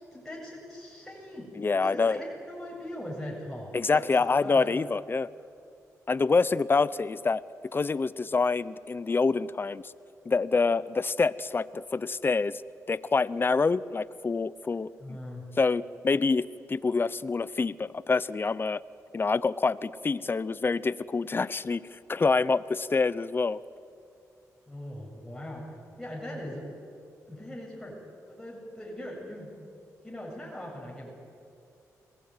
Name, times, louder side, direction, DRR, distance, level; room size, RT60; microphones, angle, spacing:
voice 1, 0.1-1.5 1.8-4.0 4.4-4.7 15.0-15.5 24.7-26.6 27.3-28.0 28.3-29.6 30.0-31.1, left 1 dB, 5° left, -4 dB, 7.7 m, -40 dB
voice 2, 1.6-2.2 3.7-5.3 6.1-7.4 7.7-9.9 10.2-12.6 12.9-15.2 15.6-18.8 19.1-23.6, left 4 dB, 35° left, 18 dB, 0.7 m, -26 dB
29.5 x 19.0 x 9.6 m, 2.4 s
cardioid pair, 70°, 6 cm